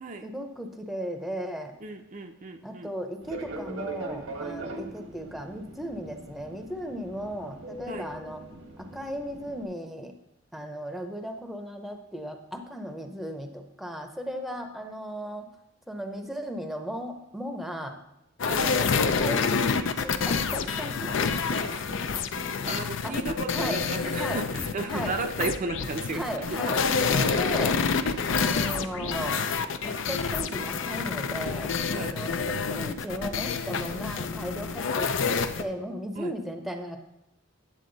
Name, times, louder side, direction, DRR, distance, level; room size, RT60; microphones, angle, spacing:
voice 1, 0.2-1.7 2.6-8.4 8.8-10.1 10.5-15.5 15.9-18.0 18.5-19.5 20.0-22.1 23.0-23.2 23.5-23.8 24.1-24.4 24.9-25.1 26.1-27.8 28.3-29.4 29.8-37.0, equal, ahead, 5 dB, 0.7 m, -36 dB
voice 2, 1.8-2.9 7.9-8.1 18.5-18.7 22.4-26.8 27.3-27.4 31.9-32.2 36.1-36.3, right 3 dB, 40° right, 5 dB, 0.6 m, -34 dB
Fixed-wing aircraft airplane, 3.2-9.6, right 2 dB, 80° right, 1.3 m, -40 dB
sound 1, 18.4-35.6, left 5 dB, 70° left, 0.5 m, -28 dB
9.5 x 7.3 x 4.0 m, 0.86 s
head